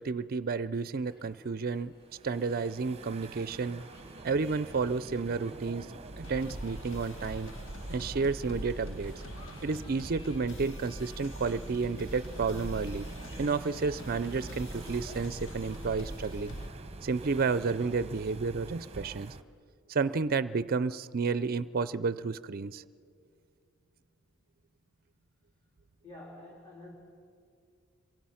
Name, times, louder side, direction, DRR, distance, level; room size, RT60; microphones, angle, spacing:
voice 1, 0.0-1.9 2.2-3.8 4.2-7.5 7.9-9.1 9.6-13.1 13.4-16.5 17.0-19.3 19.9-22.8, right 4 dB, 45° right, 16 dB, 0.5 m, -31 dB
sound 1, 1.0-16.7, equal, 50° left, 6.2 m, -56 dB
sound 2, 2.0-19.4, right 2 dB, 30° right, 0.9 m, -46 dB
sound 3, 6.2-16.7, equal, 65° left, 1.6 m, -43 dB
voice 2, 26.0-26.9, left 1 dB, 20° left, -4 dB, 3.5 m, -48 dB
27.0 x 23.5 x 5.7 m, 2.3 s
head